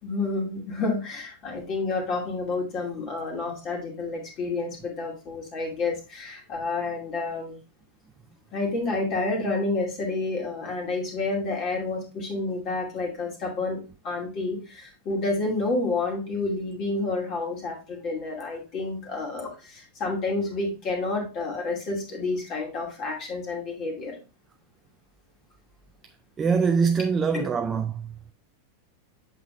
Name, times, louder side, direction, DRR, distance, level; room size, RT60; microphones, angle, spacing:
voice 1, 0.0-7.6 8.5-24.2 27.3-27.4, left 3 dB, 35° left, 2.4 m, -29 dB
voice 2, 26.4-28.1, right 5 dB, 20° right, 0.4 m, -23 dB
8.1 x 5.9 x 2.5 m
figure-of-eight pair, 90°, 0 cm